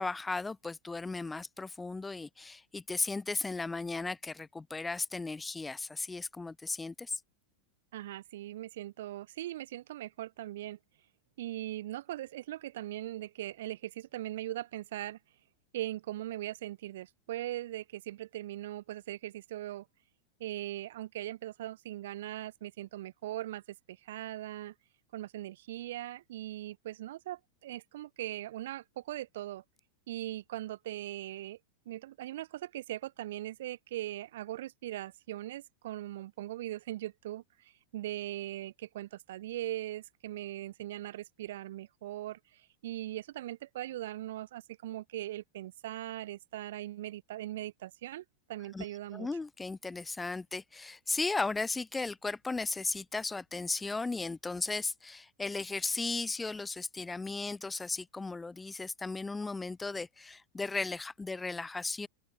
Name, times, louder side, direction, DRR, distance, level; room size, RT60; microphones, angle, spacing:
voice 1, 0.0-7.2 48.7-48.9 49.1-62.1, left 3 dB, 10° left, 2.0 m, -36 dB
voice 2, 7.9-10.8 11.4-15.2 15.7-19.9 20.4-24.7 25.1-29.6 30.1-31.6 31.9-49.3, right 14 dB, 55° right, 4.1 m, -40 dB
open air
figure-of-eight pair, 90°, 0 cm